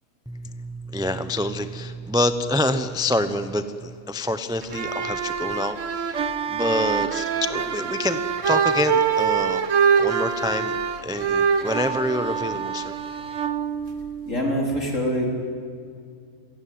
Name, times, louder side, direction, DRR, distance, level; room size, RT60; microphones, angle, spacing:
voice 1, 0.3-6.2 6.5-8.2 8.5-9.7 10.0-12.9, left 1 dB, 5° right, 10 dB, 0.5 m, -27 dB
sound 1, 4.6-14.4, right 6 dB, 60° right, 1.5 m, -24 dB
voice 2, 14.3-15.3, equal, 55° left, 0 dB, 4.5 m, -24 dB
27.5 x 16.5 x 9.4 m, 2.2 s
omnidirectional pair, 1.5 m